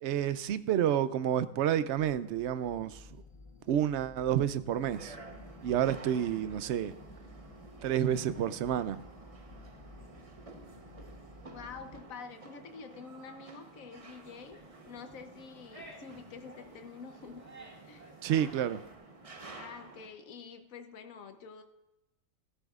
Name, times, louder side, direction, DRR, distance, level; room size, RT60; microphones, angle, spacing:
voice 1, 0.0-3.0 3.7-5.1 5.6-6.9 7.8-9.0 18.2-18.8, right 10 dB, 65° right, 0.8 m, -29 dB
sound 1, 2.0-12.0, left 2 dB, 25° left, 0.8 m, -53 dB
sound 2, 4.9-20.1, right 3 dB, 30° right, 0.9 m, -52 dB
voice 2, 11.5-14.6 14.9-17.5 17.8-18.1 19.5-21.6, left 5 dB, 85° left, 1.3 m, -47 dB
sound 3, 14.0-19.0, right 1 dB, 10° right, 2.0 m, -55 dB
15.0 x 13.0 x 2.4 m
omnidirectional pair, 1.4 m